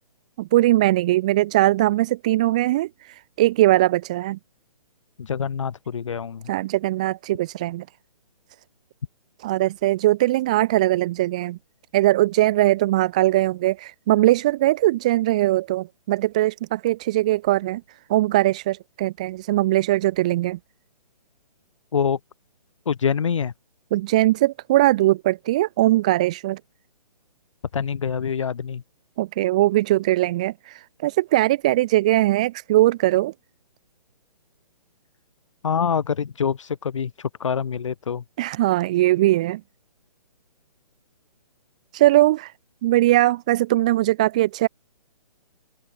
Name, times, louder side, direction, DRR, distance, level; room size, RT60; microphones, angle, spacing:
voice 1, 0.4-4.4 6.5-7.8 9.4-11.6 11.9-17.8 18.1-20.6 23.9-26.6 29.2-33.3 38.4-39.6 41.9-42.5 42.8-44.7, right 16 dB, 10° right, 0.6 m, -20 dB
voice 2, 5.2-6.5 21.9-22.2 22.9-23.5 27.7-28.8 35.6-38.2, left 7 dB, 50° left, 3.8 m, -25 dB
hypercardioid pair, 175°, 21 cm